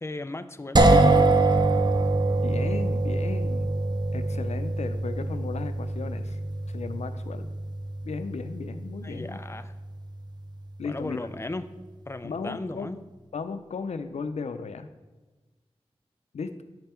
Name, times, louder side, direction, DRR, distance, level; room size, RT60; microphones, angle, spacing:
voice 1, 0.0-0.8 9.0-9.7 10.8-11.7 12.1-13.0, left 2 dB, 25° left, 11 dB, 0.4 m, -36 dB
sound 1, 0.8-10.5, right 2 dB, 40° right, 0.6 m, -25 dB
voice 2, 2.4-3.7 4.1-6.4 6.7-7.5 8.0-9.4 10.8-11.2 12.2-12.9 13.3-14.9 16.3-16.6, left 4 dB, 90° left, 9 dB, 0.5 m, -35 dB
9.6 x 5.4 x 4.4 m, 1.2 s
wide cardioid pair, 85°, 11 cm